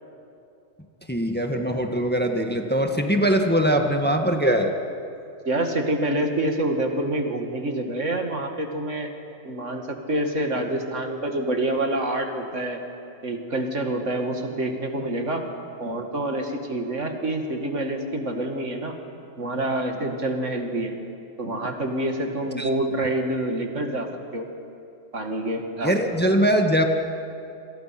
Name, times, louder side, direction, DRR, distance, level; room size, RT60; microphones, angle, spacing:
voice 1, 1.1-4.7 22.6-22.7 25.8-26.9, equal, 10° left, 3 dB, 1.6 m, -21 dB
voice 2, 5.5-9.1 9.4-12.8 13.2-15.4 15.8-18.9 19.4-20.9 21.4-24.1 24.3-24.5 25.1-26.0 26.2-26.3, right 1 dB, 75° right, 3 dB, 2.6 m, -27 dB
27.5 x 27.0 x 6.0 m, 2.6 s
omnidirectional pair, 1.3 m